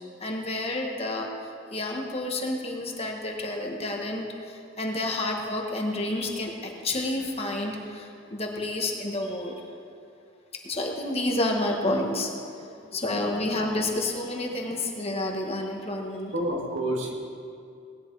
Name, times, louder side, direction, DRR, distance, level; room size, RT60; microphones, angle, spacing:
voice 1, 0.2-1.3 1.7-9.6 10.6-12.3 12.9-16.3, left 1 dB, 30° left, 1 dB, 1.6 m, -29 dB
voice 2, 12.8-13.4 15.2-15.3 16.3-17.1, right 1 dB, 80° right, -1 dB, 2.5 m, -31 dB
19.0 x 10.5 x 4.8 m, 2.5 s
head